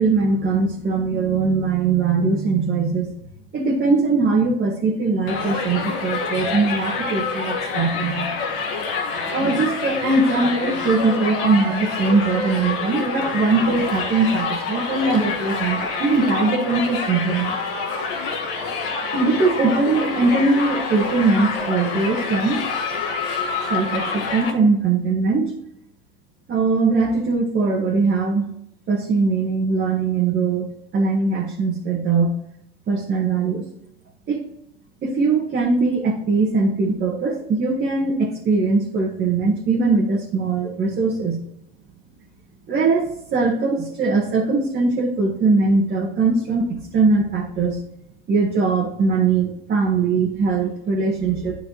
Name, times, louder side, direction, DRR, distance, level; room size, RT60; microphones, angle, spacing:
voice 1, 0.0-3.1 3.5-8.3 9.3-17.6 19.1-22.6 23.7-25.6 26.5-28.5 28.9-32.3 32.9-33.6 34.3-34.4 35.0-41.4 42.7-47.8 48.3-51.6, right 4 dB, 35° right, -3 dB, 1.7 m, -21 dB
Crowd, 5.3-24.5, left 4 dB, 65° left, 1.7 m, -27 dB
11.0 x 5.1 x 3.0 m, 0.79 s
hypercardioid pair, 90°, 29 cm